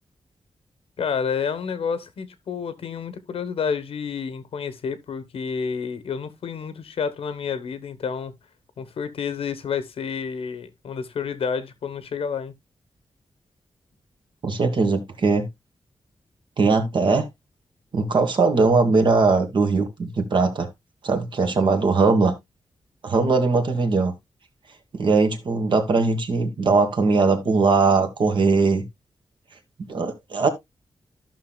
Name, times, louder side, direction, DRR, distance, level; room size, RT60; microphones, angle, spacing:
voice 1, 1.0-8.3 8.8-12.5, left 6 dB, 80° left, 1.1 m, -29 dB
voice 2, 14.4-15.5 16.6-17.3 17.9-20.7 21.0-22.3 23.0-24.1 24.9-28.8 29.9-30.5, right 4 dB, 55° right, 1.8 m, -20 dB
14.0 x 5.9 x 2.3 m
wide cardioid pair, 135°, 10 cm